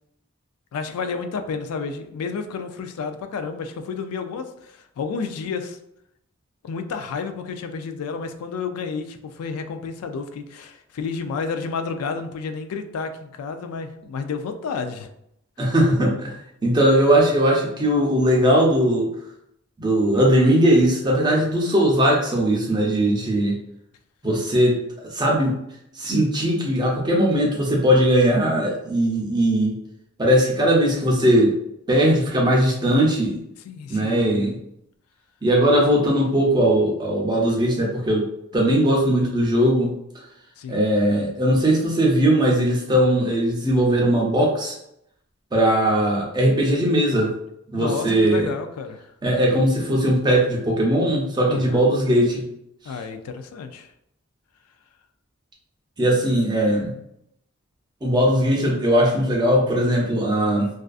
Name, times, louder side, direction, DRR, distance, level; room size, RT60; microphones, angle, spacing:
voice 1, 0.7-5.8 6.6-15.1 33.6-34.2 38.9-39.0 40.6-40.8 47.7-49.0 51.5-51.8 52.8-53.9, left 5 dB, 85° left, 7 dB, 0.3 m, -31 dB
voice 2, 15.6-16.3 16.6-19.1 19.8-23.6 24.2-25.6 26.0-29.8 30.2-31.5 31.9-33.4 33.9-34.6 35.4-38.2 38.5-40.2 40.7-44.8 45.5-47.3 47.7-48.5 49.2-52.5 56.0-56.9 58.0-60.7, right 1 dB, 20° right, -2 dB, 0.4 m, -19 dB
2.4 x 2.3 x 2.3 m, 0.77 s
head